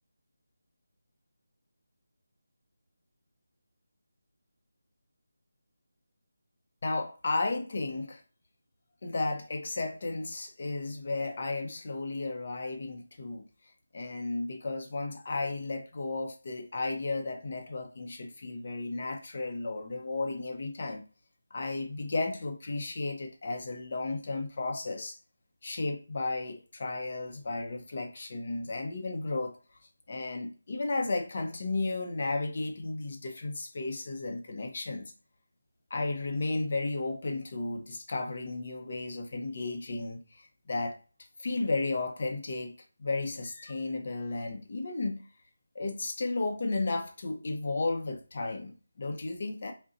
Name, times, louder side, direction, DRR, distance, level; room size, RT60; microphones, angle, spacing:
voice 1, 6.8-8.2 9.0-13.4 13.9-21.0 21.5-25.2 25.6-29.6 30.1-35.1 35.9-41.0 41.4-45.2 45.7-49.7, left 3 dB, 45° left, 0.6 m, -34 dB
2.5 x 2.1 x 3.8 m
figure-of-eight pair, 170°, 0 cm